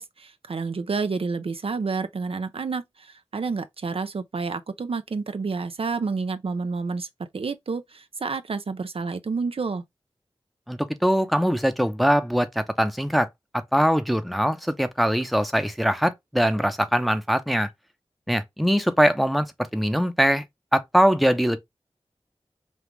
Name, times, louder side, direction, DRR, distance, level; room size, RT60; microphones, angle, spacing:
voice 1, 0.0-7.1 7.3-9.8, right 4 dB, 65° right, 0.4 m, -29 dB
voice 2, 10.7-13.3 13.7-17.7 18.3-19.5 19.7-20.4 20.7-21.6, equal, ahead, 0.7 m, -22 dB
5.1 x 2.4 x 3.1 m
wide cardioid pair, 50°, 10 cm